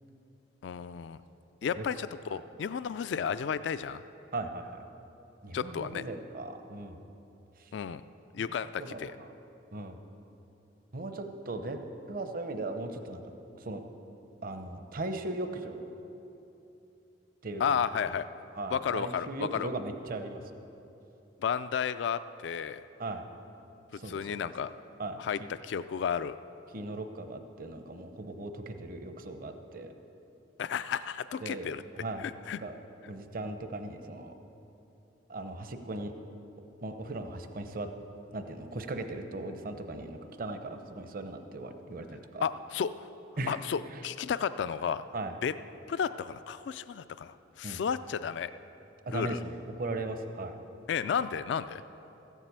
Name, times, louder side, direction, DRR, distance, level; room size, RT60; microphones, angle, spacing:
voice 1, 0.6-1.2 1.6-4.0 5.5-6.0 7.7-8.0 8.3-9.1 17.6-18.2 18.7-19.7 21.4-22.8 24.0-24.7 25.2-26.4 30.6-31.8 32.2-32.6 42.4-43.1 43.5-45.0 45.4-45.5 45.9-48.5 49.1-49.4 50.9-51.8, left 7 dB, 65° left, 14 dB, 0.3 m, -32 dB
voice 2, 4.3-4.8 5.4-7.0 8.8-9.3 9.7-10.0 10.9-11.8 12.1-13.2 13.6-13.8 14.4-15.9 17.4-17.8 18.6-20.5 23.0-23.2 23.9-24.5 25.0-25.5 26.7-29.9 31.4-32.3 32.6-32.7 33.1-34.3 35.3-36.1 36.8-37.9 38.3-42.5 43.4-43.6 45.1-45.3 47.6-47.8 49.1-50.5, right 2 dB, 50° right, 7 dB, 0.8 m, -38 dB
14.0 x 7.4 x 8.2 m, 3.0 s
head